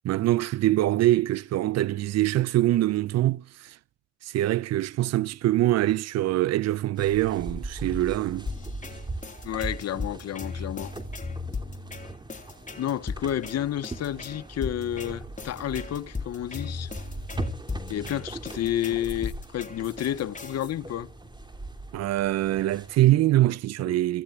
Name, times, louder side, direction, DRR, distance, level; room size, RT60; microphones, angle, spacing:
voice 1, 0.0-3.8 4.2-8.5 21.9-24.2, right 15 dB, 60° right, 0.7 m, -24 dB
sound 1, 7.0-23.0, right 2 dB, 15° right, 3.0 m, -40 dB
sound 2, 8.5-20.7, left 4 dB, 25° left, 3.3 m, -37 dB
voice 2, 9.4-10.9 12.8-16.9 17.9-21.1 23.8-24.0, left 11 dB, 60° left, 1.3 m, -30 dB
29.5 x 15.0 x 2.5 m
hypercardioid pair, 50°, 30 cm